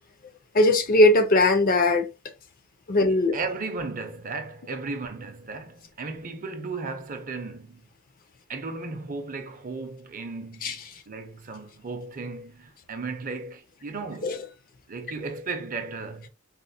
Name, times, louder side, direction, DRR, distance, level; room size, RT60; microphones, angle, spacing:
voice 1, 0.5-2.1 2.9-3.3 10.6-10.7 14.2-14.4, left 2 dB, 40° left, 0.5 m, -19 dB
voice 2, 3.1-7.8 8.5-14.5 14.9-16.3, right 3 dB, 40° right, 0.5 m, -35 dB
4.1 x 2.1 x 2.6 m
head